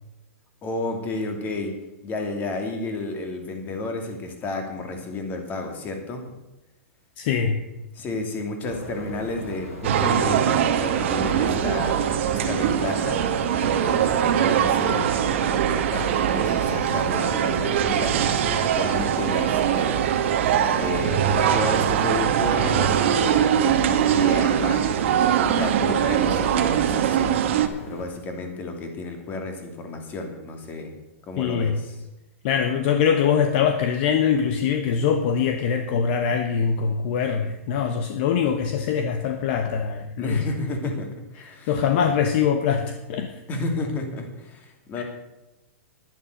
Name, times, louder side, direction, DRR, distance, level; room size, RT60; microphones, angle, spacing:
voice 1, 0.6-1.7 2.0-6.3 7.9-13.2 13.6-18.2 18.6-20.1 20.7-25.1 25.4-27.3 27.8-30.9 31.3-32.0 40.2-41.8 43.5-45.0, left 2 dB, 25° left, 4 dB, 2.7 m, -32 dB
voice 2, 7.2-7.6 31.4-31.8 32.4-40.4 41.4-43.3 45.0-45.1, left 7 dB, 45° left, 6 dB, 1.2 m, -23 dB
sound 1, 8.6-28.1, left 1 dB, 80° left, 4.9 m, -38 dB
sound 2, 9.8-27.7, right 9 dB, 55° right, 1.4 m, -22 dB
11.5 x 11.0 x 6.7 m, 0.97 s
hypercardioid pair, 145°, 8 cm